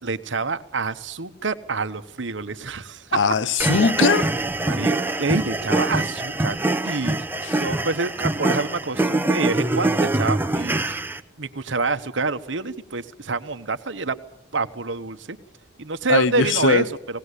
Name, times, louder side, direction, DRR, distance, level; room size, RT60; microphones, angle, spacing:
voice 1, 0.0-3.2 4.7-6.6 6.8-7.2 7.6-11.0 11.4-14.2 14.5-15.4 15.8-16.9, right 3 dB, 65° right, 1.1 m, -27 dB
voice 2, 3.1-4.3 7.4-7.6 16.1-16.9, left 4 dB, 70° left, 0.8 m, -20 dB
sound 1, 3.6-11.2, right 2 dB, 10° right, 0.8 m, -24 dB
20.0 x 18.0 x 8.3 m
head